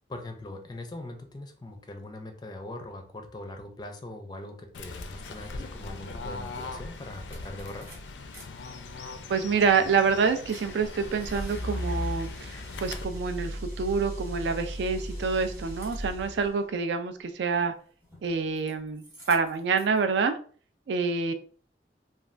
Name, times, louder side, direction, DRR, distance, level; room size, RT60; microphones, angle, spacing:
voice 1, 0.1-7.9, left 1 dB, 25° left, 5 dB, 0.4 m, -41 dB
Fowl / Bird, 4.7-13.0, left 3 dB, 85° left, 0.4 m, -41 dB
sound 1, 6.5-6.6 6.9-8.4 8.8-16.5 18.0-18.7 19.0-20.0, equal, 10° right, 0.9 m, -38 dB
voice 2, 9.3-17.7 18.2-20.4 20.9-21.3, right 5 dB, 75° right, 8 dB, 0.4 m, -27 dB
3.2 x 2.3 x 2.4 m, 0.44 s
head